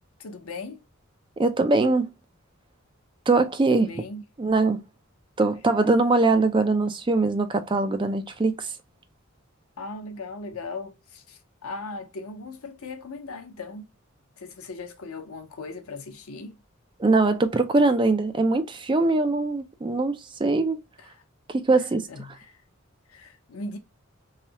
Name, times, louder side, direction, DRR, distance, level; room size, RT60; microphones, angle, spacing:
voice 1, 0.2-0.8 3.7-4.2 9.8-13.9 14.4-16.6 21.0-21.2 21.8-22.6 23.1-23.8, left 3 dB, 90° left, 0.7 m, -38 dB
voice 2, 1.4-2.1 3.3-3.9 4.4-4.8 5.4-8.7 17.0-20.8 21.6-22.1, right 3 dB, 25° right, 0.4 m, -22 dB
3.2 x 2.7 x 2.7 m
head